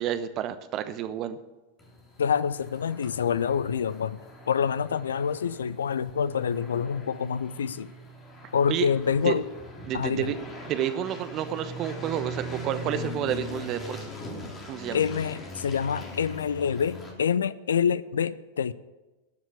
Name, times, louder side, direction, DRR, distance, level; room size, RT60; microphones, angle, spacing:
voice 1, 0.0-1.4 8.7-8.9 9.2-9.3 9.9-10.4 10.7-14.0 14.7-15.0, right 11 dB, 35° right, 11 dB, 1.0 m, -30 dB
sound 1, 1.8-17.1, equal, 20° left, 3.3 m, -41 dB
voice 2, 2.2-4.2 4.5-7.9 8.5-9.4 9.9-10.3 14.9-18.7, left 7 dB, 65° left, 17 dB, 0.5 m, -26 dB
13.5 x 7.2 x 8.3 m, 1.1 s
figure-of-eight pair, 90°, 0 cm